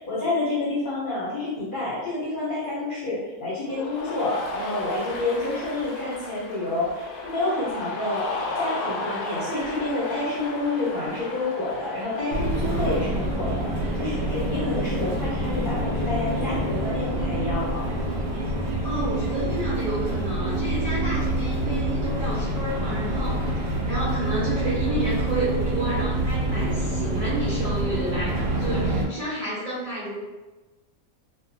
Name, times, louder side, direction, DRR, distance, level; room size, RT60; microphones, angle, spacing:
voice 1, 0.0-8.3 8.6-17.9, left 2 dB, 45° left, -8 dB, 0.8 m, -28 dB
Cheering, 3.7-18.5, left 3 dB, 85° left, 1.1 m, -36 dB
sound 1, 12.3-29.1, right 1 dB, 75° right, 1.1 m, -26 dB
voice 2, 18.8-30.2, right 1 dB, 55° right, -9 dB, 0.5 m, -30 dB
2.7 x 2.3 x 2.7 m, 1.2 s
omnidirectional pair, 1.6 m